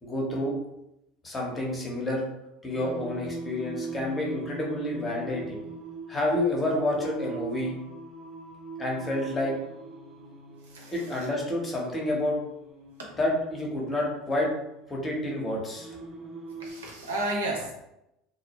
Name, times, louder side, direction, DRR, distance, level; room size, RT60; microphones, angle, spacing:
voice 1, 0.0-0.6 1.2-2.2 2.6-5.6 6.1-7.8 8.8-9.6 10.9-12.4 13.2-14.5 14.9-15.9, left 1 dB, 20° left, -2 dB, 0.8 m, -29 dB
Singing, 2.7-16.7, right 2 dB, 20° right, 0.7 m, -42 dB
voice 2, 10.6-11.3 16.6-17.8, right 1 dB, 85° right, -2 dB, 0.6 m, -33 dB
2.2 x 2.0 x 2.9 m, 0.87 s
hypercardioid pair, 80°, 0 cm